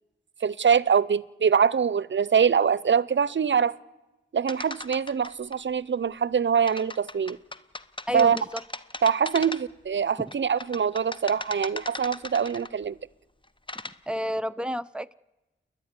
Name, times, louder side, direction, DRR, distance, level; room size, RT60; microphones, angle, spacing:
voice 1, 0.4-3.8 4.3-7.4 8.1-8.4 9.0-13.0, right 7 dB, 65° right, 0.6 m, -24 dB
sound 1, 4.5-5.6 6.7-9.9 10.3-12.8 13.4-13.9, left 2 dB, 25° left, 1.0 m, -38 dB
voice 2, 8.1-8.4 10.2-10.3 14.1-15.1, equal, 5° right, 0.6 m, -30 dB
29.0 x 11.5 x 9.7 m
wide cardioid pair, 60°, 20 cm